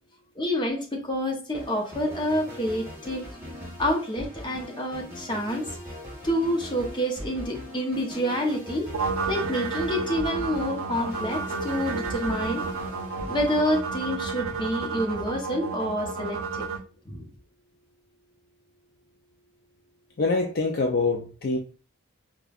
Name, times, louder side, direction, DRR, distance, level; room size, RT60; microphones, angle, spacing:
voice 1, 0.4-3.3 3.8-5.7 6.2-8.9 9.3-12.6 13.3-16.7 17.1-17.2, equal, 20° left, 0.8 m, -28 dB
sound 1, 1.5-14.5, equal, 15° right, 1.4 m, -40 dB
sound 2, 8.9-16.8, right 4 dB, 80° right, 0.5 m, -31 dB
voice 2, 20.2-21.6, left 3 dB, 45° left, 0.4 m, -25 dB
5.0 x 2.3 x 2.3 m
head